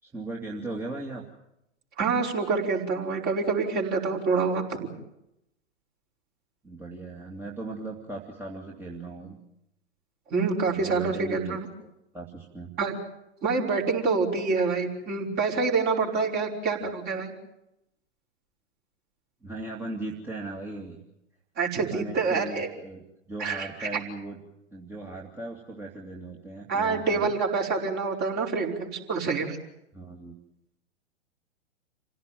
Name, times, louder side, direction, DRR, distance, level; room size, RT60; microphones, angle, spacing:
voice 1, 0.0-1.2 6.6-9.4 10.7-12.7 19.4-21.0 21.8-24.4 24.7-27.3 29.9-30.3, right 2 dB, 5° right, -3 dB, 2.5 m, -38 dB
voice 2, 2.0-4.9 10.3-11.7 12.8-12.9 13.4-17.3 21.6-22.7 23.4-24.0 26.7-29.6, right 4 dB, 30° right, 0 dB, 5.2 m, -27 dB
28.5 x 17.0 x 9.3 m, 0.86 s
figure-of-eight pair, 110°, 36 cm